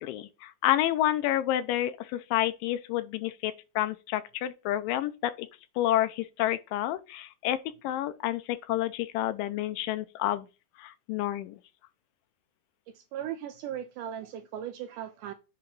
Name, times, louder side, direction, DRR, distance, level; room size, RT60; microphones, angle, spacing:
voice 1, 0.0-5.5 5.8-7.6 7.8-10.5 10.8-11.6, left 13 dB, 80° left, 2.1 m, -29 dB
voice 2, 12.9-15.3, right 10 dB, 80° right, 1.9 m, -38 dB
8.5 x 2.9 x 5.3 m
omnidirectional pair, 4.2 m